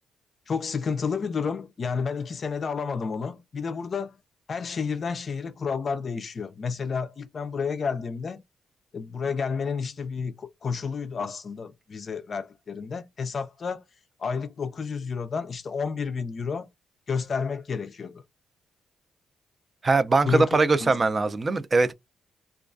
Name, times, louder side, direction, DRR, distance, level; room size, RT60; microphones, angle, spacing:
voice 1, 0.5-4.2 4.5-8.4 8.9-13.8 14.2-16.7 17.1-18.2 20.2-21.0, left 5 dB, 50° left, 0.4 m, -30 dB
voice 2, 19.8-21.9, right 3 dB, 35° right, 0.4 m, -21 dB
2.3 x 2.2 x 2.4 m
cardioid pair, 80°, 0 cm